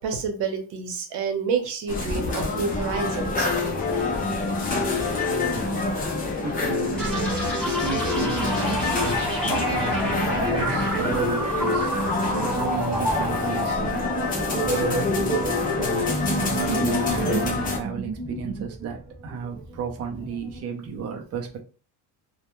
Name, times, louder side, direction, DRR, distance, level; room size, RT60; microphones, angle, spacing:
voice 1, 0.0-3.5, right 5 dB, 70° right, 5 dB, 0.8 m, -28 dB
sound 1, 1.9-17.8, left 3 dB, 20° left, 0.4 m, -26 dB
voice 2, 6.4-13.8 14.5-21.6, right 6 dB, 35° right, 2 dB, 0.5 m, -33 dB
sound 2, 7.0-20.6, right 1 dB, ahead, 0.8 m, -29 dB
2.1 x 2.1 x 2.9 m, 0.40 s
cardioid pair, 160°, 42 cm